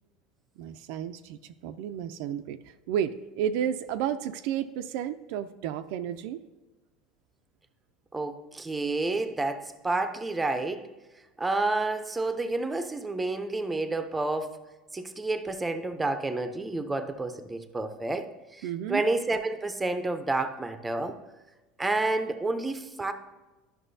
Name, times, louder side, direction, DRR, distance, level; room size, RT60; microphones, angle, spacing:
voice 1, 0.6-6.4 18.6-19.0, right 9 dB, 70° right, 9 dB, 0.4 m, -32 dB
voice 2, 8.1-10.9 11.4-14.6 14.9-21.2 21.8-23.1, right 2 dB, 10° right, 8 dB, 0.6 m, -30 dB
11.0 x 5.9 x 2.7 m, 1.2 s
supercardioid pair, 130°, 0 cm